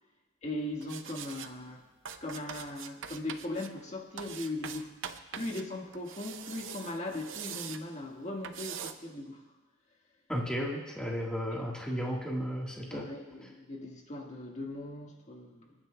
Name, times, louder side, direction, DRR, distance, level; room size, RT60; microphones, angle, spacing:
voice 1, 0.4-1.9 2.2-9.4 11.5-11.6 12.9-15.7, left 2 dB, 35° left, 0 dB, 1.6 m, -39 dB
sound 1, 0.8-1.5 2.0-3.7 4.2-5.6 5.9-7.8 8.4-8.9, right 8 dB, 65° right, 0.6 m, -42 dB
voice 2, 10.3-13.1, equal, 5° left, -2 dB, 1.5 m, -34 dB
28.5 x 9.6 x 2.2 m, 1.1 s
head